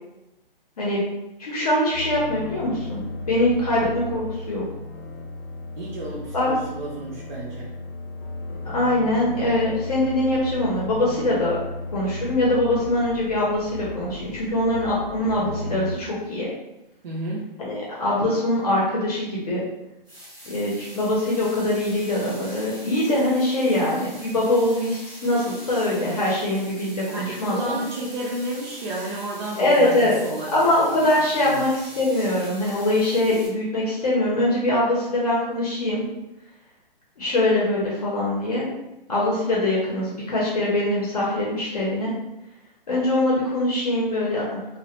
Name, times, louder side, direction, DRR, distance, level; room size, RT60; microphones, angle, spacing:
voice 1, 1.4-3.0 3.3-4.6 6.3-6.5 8.6-11.6 11.9-16.5 17.6-19.6 20.4-27.8 29.6-30.1 30.5-31.7 32.0-36.0 37.2-38.7 39.1-42.1 42.9-44.8, left 1 dB, 40° left, -5 dB, 0.6 m, -23 dB
sound 1, 1.9-15.9, left 2 dB, 80° left, 0.6 m, -35 dB
voice 2, 5.8-7.7 17.0-17.5 27.1-31.0 31.4-31.6, right 1 dB, 50° right, -5 dB, 0.5 m, -32 dB
sound 2, 20.0-33.5, equal, 10° right, 0.7 m, -43 dB
2.2 x 2.1 x 2.8 m, 0.94 s
hypercardioid pair, 155°, 29 cm